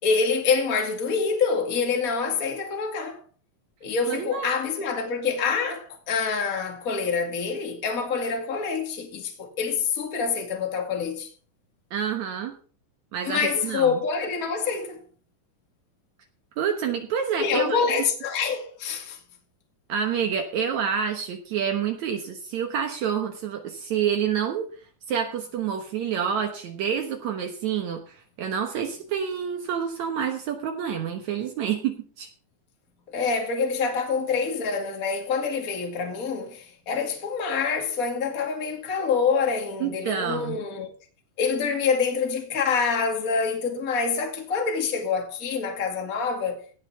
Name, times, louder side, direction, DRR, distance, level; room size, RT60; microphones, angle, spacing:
voice 1, 0.0-3.2 3.8-11.3 13.2-15.0 17.4-19.2 33.1-40.9 41.4-46.6, left 5 dB, 30° left, 2.3 m, -26 dB
voice 2, 4.1-4.6 11.9-12.6 13.1-14.0 16.6-17.8 19.9-24.7 25.1-32.3 39.8-40.6, right 8 dB, 65° right, 2.4 m, -28 dB
17.5 x 5.9 x 5.7 m
omnidirectional pair, 3.6 m